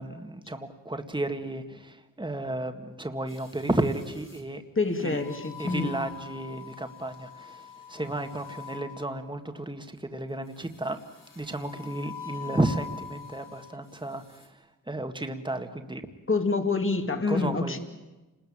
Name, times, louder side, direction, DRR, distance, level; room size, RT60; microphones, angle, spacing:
voice 1, 0.0-4.6 5.0-5.2 5.6-11.0 11.4-16.0 17.3-17.8, right 1 dB, 15° right, 7 dB, 1.9 m, -33 dB
sound 1, 3.3-4.4 5.1-9.4 10.6-13.8 14.2-14.5, left 7 dB, 75° left, 5.4 m, -44 dB
voice 2, 4.8-5.9 16.3-17.8, left 3 dB, 40° left, 6 dB, 2.3 m, -27 dB
29.5 x 20.5 x 8.8 m, 1.1 s
wide cardioid pair, 105°, 32 cm